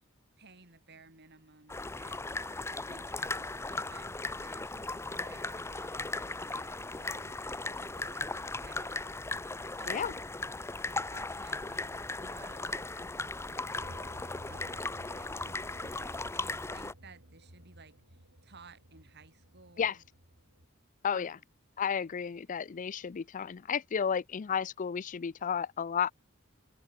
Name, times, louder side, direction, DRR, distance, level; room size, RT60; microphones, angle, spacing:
voice 1, 0.4-2.4 2.7-9.1 9.8-10.2 10.8-14.1 14.5-18.0 18.4-20.0 21.1-21.4, right 4 dB, 55° right, 6.6 m, -57 dB
sound 1, 1.7-16.9, left 2 dB, 15° left, 0.7 m, -37 dB
sound 2, 13.7-20.7, equal, 70° right, 7.5 m, -53 dB
voice 2, 21.0-21.4 21.8-26.1, left 7 dB, 40° left, 0.4 m, -32 dB
head